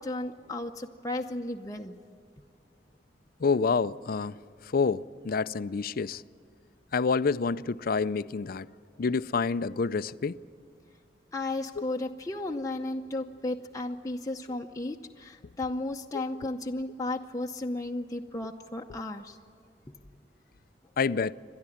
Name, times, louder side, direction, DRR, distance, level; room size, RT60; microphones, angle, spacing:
voice 1, 0.0-2.0 11.3-19.4, left 2 dB, 20° left, 0.7 m, -34 dB
voice 2, 3.4-4.4 4.6-6.2 6.9-8.7 9.0-10.4 11.8-11.9 21.0-21.3, left 5 dB, 55° left, 0.5 m, -28 dB
29.0 x 12.5 x 10.0 m
head